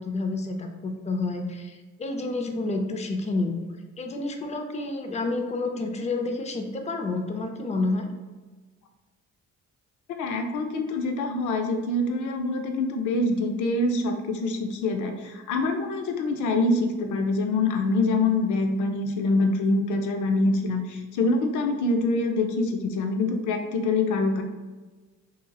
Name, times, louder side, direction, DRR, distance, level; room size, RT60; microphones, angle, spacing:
voice 1, 0.0-3.7 4.0-8.1, left 3 dB, 25° left, 4 dB, 0.4 m, -29 dB
voice 2, 10.1-24.4, left 2 dB, 75° left, 5 dB, 0.5 m, -25 dB
2.8 x 2.7 x 2.3 m, 1.3 s
cardioid pair, 90°, 30 cm